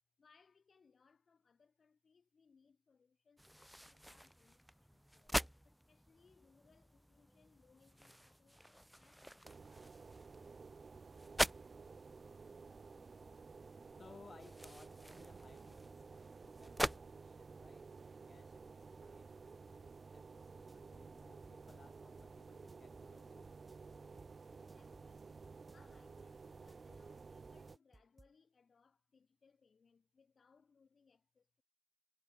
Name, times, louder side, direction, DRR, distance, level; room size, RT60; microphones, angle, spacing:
voice 1, 0.2-10.3 24.5-25.3 25.7-31.6, left 5 dB, 90° left, 6.4 m, -71 dB
sound 1, 3.4-17.0, equal, 5° right, 0.5 m, -45 dB
sound 2, 9.4-27.8, right 4 dB, 70° right, 0.8 m, -54 dB
voice 2, 14.0-23.6, left 4 dB, 65° left, 4.9 m, -64 dB
sound 3, 20.4-28.3, right 2 dB, 30° right, 2.4 m, -65 dB
wide cardioid pair, 90°, 0 cm